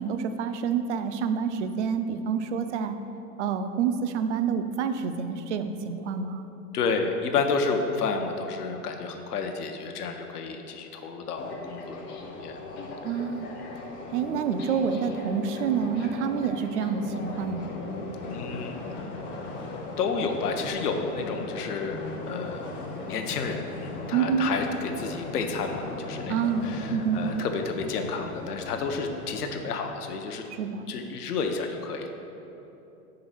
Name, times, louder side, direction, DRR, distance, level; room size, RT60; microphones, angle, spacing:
voice 1, 0.0-3.0 3.4-6.5 13.0-13.5 14.1-17.8 24.1-24.5 26.3-27.2 30.5-30.9, right 6 dB, 50° right, 9 dB, 0.5 m, -28 dB
voice 2, 6.7-12.6 18.3-18.8 20.0-22.0 22.3-22.7 23.0-30.5 30.9-32.1, left 4 dB, 75° left, 4 dB, 0.7 m, -31 dB
sound 1, 11.4-29.4, left 2 dB, 25° left, 0.6 m, -38 dB
5.1 x 3.8 x 5.6 m, 2.9 s
figure-of-eight pair, 105°, 47 cm